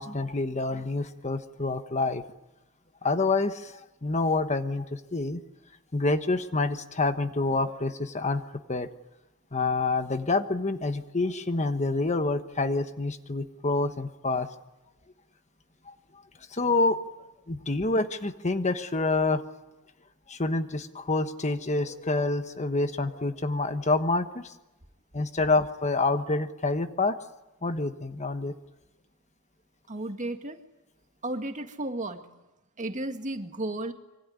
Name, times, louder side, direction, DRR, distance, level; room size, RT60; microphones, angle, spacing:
voice 1, 0.0-2.2 3.0-5.4 5.9-8.4 8.7-8.9 9.5-14.5 16.5-17.0 17.5-19.4 20.3-24.5 25.1-27.2 27.6-28.5, left 3 dB, 35° left, 9 dB, 1.2 m, -27 dB
voice 2, 29.9-30.6 31.2-32.2 32.8-33.9, right 1 dB, 35° right, 6 dB, 2.0 m, -33 dB
25.5 x 24.0 x 9.6 m, 0.98 s
head